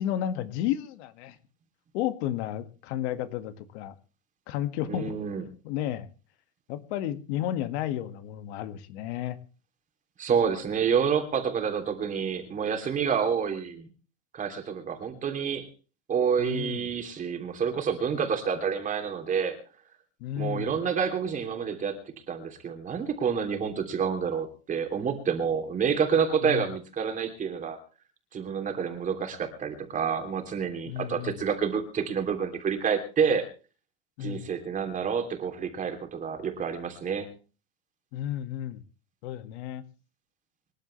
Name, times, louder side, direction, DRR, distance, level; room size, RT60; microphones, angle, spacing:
voice 1, 0.0-1.4 1.9-3.9 4.5-5.1 5.6-6.1 6.7-9.4 16.4-16.8 20.2-20.7 26.4-26.7 30.9-31.4 34.2-34.4 38.1-38.8 39.2-39.8, left 11 dB, 65° left, 10 dB, 2.0 m, -32 dB
voice 2, 4.9-5.4 10.2-13.9 14.3-15.7 16.1-19.6 20.4-22.0 22.3-27.8 28.3-33.4 34.2-37.3, right 6 dB, 20° right, 6 dB, 3.1 m, -28 dB
26.0 x 11.5 x 3.3 m, 0.36 s
cardioid pair, 170°, 35 cm